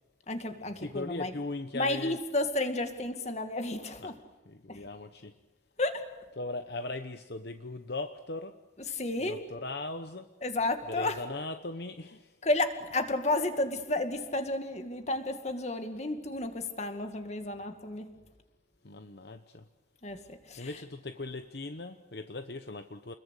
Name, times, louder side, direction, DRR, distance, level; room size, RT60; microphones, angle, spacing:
voice 1, 0.3-1.3 1.7-4.2 4.7-4.9 5.8-6.1 8.8-9.5 10.4-11.2 12.4-18.1 20.0-20.8, left 2 dB, 35° left, 7 dB, 2.1 m, -32 dB
voice 2, 0.8-2.1 4.0-4.1 4.5-5.3 6.4-8.6 9.3-10.3 10.9-12.4 18.8-19.7 20.6-23.1, left 2 dB, 60° left, 8 dB, 1.0 m, -39 dB
29.5 x 21.5 x 8.3 m, 1.1 s
head